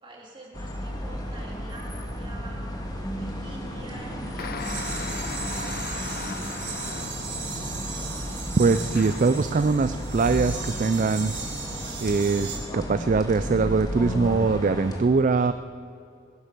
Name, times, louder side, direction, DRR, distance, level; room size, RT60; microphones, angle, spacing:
voice 1, 0.0-6.6 7.1-7.6, right 2 dB, 25° right, -2 dB, 3.1 m, -47 dB
sound 1, 0.5-15.0, equal, 20° left, 1.8 m, -34 dB
sound 2, 4.4-7.4 8.6-9.4, left 5 dB, 50° left, 0.8 m, -38 dB
sound 3, 4.6-12.6, right 5 dB, 60° right, 3.6 m, -37 dB
voice 2, 8.6-11.4 12.0-12.5 12.7-15.5, right 4 dB, 40° right, 11 dB, 0.4 m, -22 dB
18.5 x 11.0 x 6.7 m, 2.5 s
head